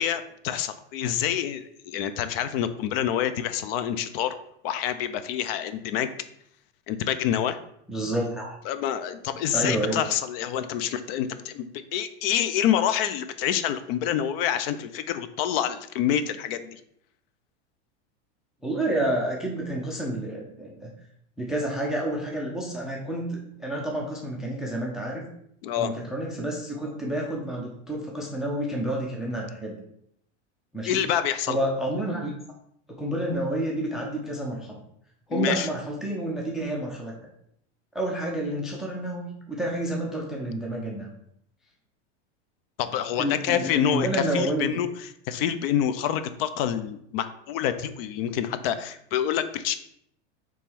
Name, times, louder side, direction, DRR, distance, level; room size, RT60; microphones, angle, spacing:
voice 1, 0.0-4.3 4.6-6.1 6.9-7.6 8.7-16.8 25.6-25.9 30.9-31.6 35.3-35.7 42.8-44.9 45.3-49.7, left 10 dB, 55° left, 11 dB, 0.5 m, -27 dB
voice 2, 7.9-8.5 9.5-10.0 18.6-20.9 21.4-25.3 25.8-29.8 30.7-30.9 31.5-32.3 32.9-34.8 35.3-37.1 37.9-41.1 43.2-44.8, right 1 dB, ahead, -1 dB, 0.3 m, -29 dB
3.5 x 3.1 x 4.4 m, 0.71 s
supercardioid pair, 145°, 34 cm